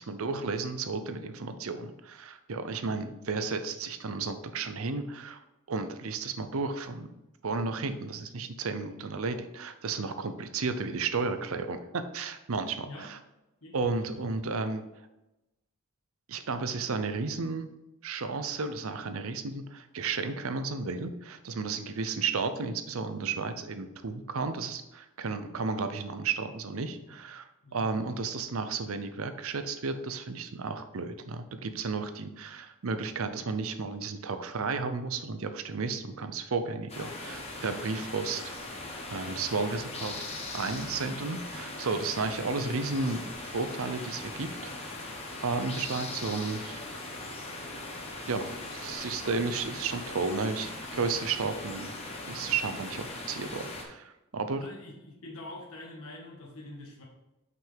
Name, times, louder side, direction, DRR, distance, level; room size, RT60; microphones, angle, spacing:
voice 1, 0.0-5.4 5.7-7.1 7.4-13.2 13.7-14.8 16.3-17.7 18.0-38.4 39.1-40.1 40.5-44.8 45.4-46.8 48.3-51.9 52.2-54.7, right 4 dB, 65° right, 9 dB, 0.6 m, -33 dB
voice 2, 13.6-14.1 27.1-27.2 27.6-27.9 41.1-41.3 41.9-42.1 54.4-57.0, left 2 dB, 75° left, -2 dB, 1.6 m, -46 dB
sound 1, 36.9-53.8, left 2 dB, 30° left, 1.1 m, -40 dB
5.9 x 5.7 x 3.5 m, 0.97 s
head